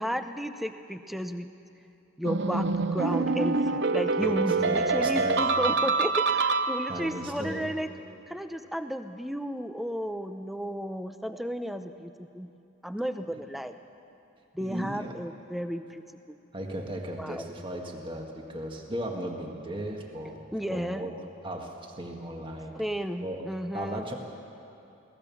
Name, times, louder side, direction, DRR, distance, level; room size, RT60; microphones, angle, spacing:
voice 1, 0.0-1.5 2.2-7.9 8.3-12.5 12.8-13.7 14.5-16.0 16.3-16.4 17.2-17.5 20.5-21.1 22.7-24.0, equal, ahead, 8 dB, 0.6 m, -33 dB
sound 1, 2.2-7.2, right 4 dB, 55° right, 0.6 m, -26 dB
voice 2, 4.2-5.4 6.9-7.7 14.6-15.2 16.5-20.4 20.7-21.1 21.4-22.7 23.2-23.4 23.7-24.2, right 1 dB, 25° right, 1 dB, 1.7 m, -36 dB
23.5 x 17.5 x 7.1 m, 2.8 s
head